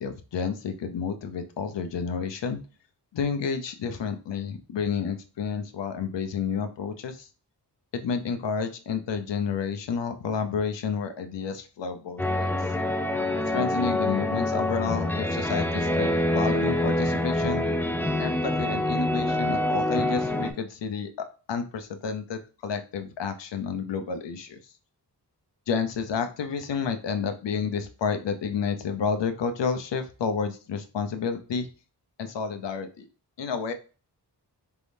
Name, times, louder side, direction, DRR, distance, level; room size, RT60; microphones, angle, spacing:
voice 1, 0.0-2.6 3.1-7.3 7.9-12.6 13.5-17.6 18.2-24.6 25.7-31.7 32.2-33.1 33.4-33.7, left 6 dB, 90° left, 7 dB, 0.7 m, -30 dB
sound 1, 12.2-20.5, left 1 dB, 5° left, 0.4 m, -26 dB
4.6 x 3.5 x 2.6 m, 0.34 s
wide cardioid pair, 130°, 42 cm